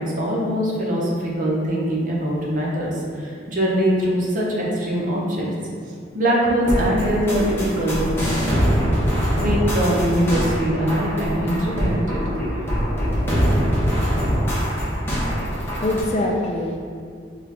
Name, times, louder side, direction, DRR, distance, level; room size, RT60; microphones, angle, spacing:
voice 1, 0.0-5.5 6.1-8.2 9.4-12.4, equal, 45° right, -4 dB, 0.8 m, -22 dB
sound 1, 6.6-16.0, equal, 15° left, 0.9 m, -23 dB
voice 2, 15.5-16.8, left 1 dB, 35° left, 0 dB, 0.4 m, -24 dB
6.0 x 2.4 x 2.9 m, 2.2 s
head